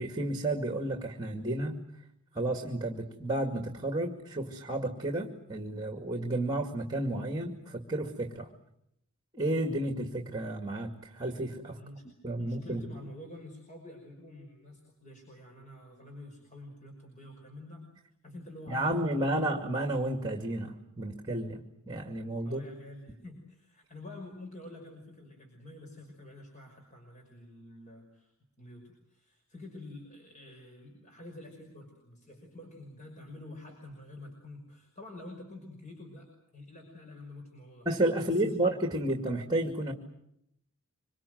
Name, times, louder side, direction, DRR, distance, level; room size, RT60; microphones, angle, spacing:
voice 1, 0.0-1.8 2.3-8.5 9.3-11.8 12.2-12.8 18.7-22.6 37.9-39.9, right 1 dB, 20° right, 4 dB, 2.3 m, -32 dB
voice 2, 11.7-12.1 12.4-17.9 18.2-19.4 22.4-28.3 28.6-37.9 38.2-38.6, left 2 dB, 35° left, 2 dB, 5.7 m, -48 dB
26.0 x 24.5 x 7.9 m, 0.76 s
head